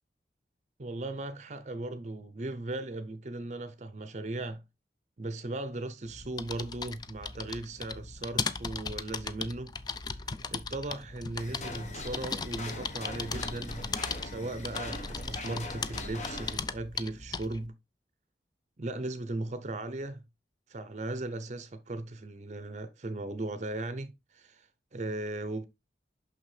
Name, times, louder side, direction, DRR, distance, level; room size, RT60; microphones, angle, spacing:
voice 1, 0.8-4.6 5.2-9.7 10.0-13.9 14.2-17.7 18.8-20.2 20.7-25.7, right 2 dB, 40° right, 0.6 m, -37 dB
sound 1, 6.0-17.7, left 4 dB, 25° left, 0.4 m, -38 dB
sound 2, 11.4-16.6, left 2 dB, 40° left, 1.1 m, -41 dB
6.1 x 6.0 x 3.2 m
head